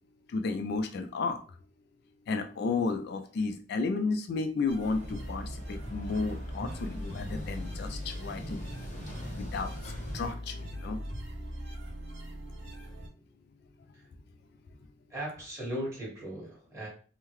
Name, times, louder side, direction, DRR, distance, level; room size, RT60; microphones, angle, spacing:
voice 1, 0.3-1.4 2.3-8.7 9.3-11.0, left 4 dB, 55° left, 7 dB, 0.3 m, -33 dB
sound 1, 4.7-13.1, equal, 75° right, 1.3 m, -40 dB
sound 2, 4.8-10.3, equal, 40° left, 0.8 m, -42 dB
voice 2, 15.1-16.9, right 1 dB, 15° right, -4 dB, 1.3 m, -37 dB
3.6 x 2.1 x 3.0 m, 0.40 s
head